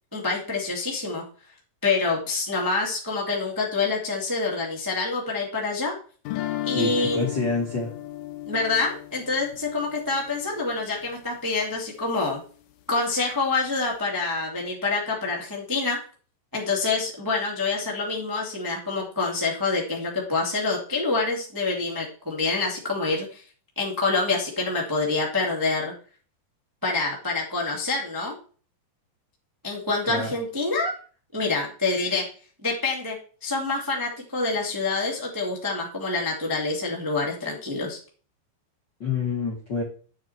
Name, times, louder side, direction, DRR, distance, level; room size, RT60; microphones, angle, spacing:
voice 1, 0.1-1.2 1.8-5.9 6.6-7.2 8.4-12.4 12.9-16.0 16.5-23.4 23.7-25.9 26.8-28.4 29.6-30.9 31.3-32.2 32.6-38.0, left 3 dB, 10° right, -2 dB, 1.3 m, -26 dB
sound 1, 6.3-11.2, left 14 dB, 75° left, 2.1 m, -35 dB
voice 2, 6.7-7.9 30.1-30.4 39.0-39.8, left 4 dB, 45° left, -3 dB, 1.5 m, -27 dB
9.5 x 6.5 x 4.4 m, 0.40 s
omnidirectional pair, 4.7 m